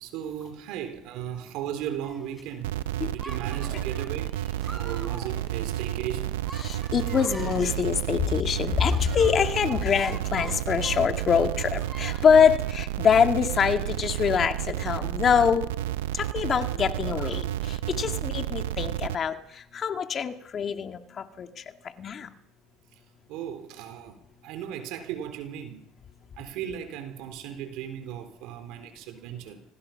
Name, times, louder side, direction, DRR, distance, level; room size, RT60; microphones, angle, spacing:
voice 1, 0.0-2.7 3.1-4.4 4.7-6.4 18.2-18.3 23.3-25.9 26.4-29.6, right 10 dB, 70° right, 3.6 m, -36 dB
sound 1, 2.0-2.4 3.1-8.1 8.5-11.1 11.4-12.4, equal, 5° right, 4.2 m, -46 dB
sound 2, 2.6-19.2, right 13 dB, 90° right, 0.7 m, -31 dB
voice 2, 6.6-15.7 16.1-22.3, left 7 dB, 40° left, 2.0 m, -24 dB
26.0 x 18.5 x 5.8 m
supercardioid pair, 85°, 0 cm